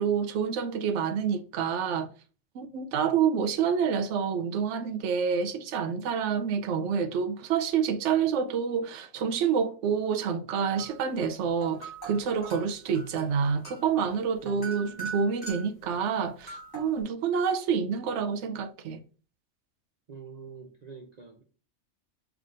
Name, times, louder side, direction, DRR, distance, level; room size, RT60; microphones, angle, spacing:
voice 1, 0.0-2.1 2.5-19.0, right 6 dB, 70° right, 0.8 m, -28 dB
sound 1, 10.7-11.1 11.4-15.8 16.4-17.0, right 4 dB, 15° left, 1.8 m, -42 dB
voice 2, 14.4-15.1 20.1-21.4, right 5 dB, 50° right, 0.5 m, -45 dB
5.5 x 3.5 x 2.5 m
omnidirectional pair, 1.4 m